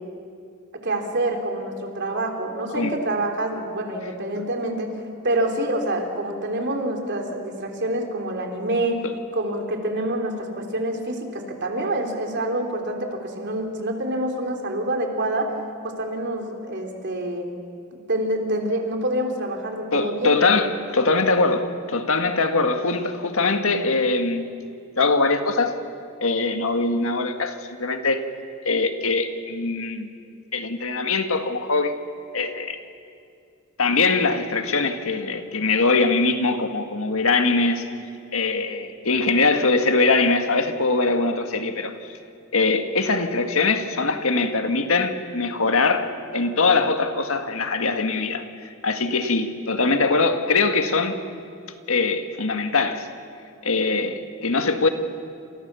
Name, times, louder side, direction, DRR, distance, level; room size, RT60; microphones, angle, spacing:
voice 1, 0.8-5.0 5.2-9.1 9.3-15.5 15.8-17.5 17.9-20.4, right 1 dB, 55° right, 3.7 m, -26 dB
voice 2, 19.9-24.5 25.0-25.7 26.2-28.2 28.6-30.1 30.5-31.9 32.3-32.8 33.8-37.8 38.3-41.9 42.5-48.4 48.8-51.2 51.9-53.1 53.6-54.9, left 3 dB, 65° left, 1.9 m, -22 dB
30.0 x 27.5 x 7.0 m
head